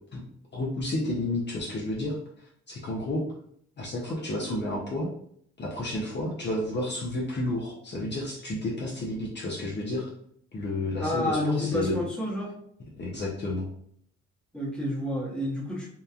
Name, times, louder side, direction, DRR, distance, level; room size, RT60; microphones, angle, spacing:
voice 1, 0.5-2.2 2.7-3.2 3.8-5.1 5.6-10.1 10.5-12.0 13.0-13.7, left 1 dB, 35° left, -4 dB, 0.6 m, -31 dB
voice 2, 11.0-12.5 14.5-15.9, left 1 dB, 5° left, -4 dB, 0.9 m, -29 dB
2.9 x 2.2 x 2.3 m, 0.66 s
cardioid pair, 90°, 30 cm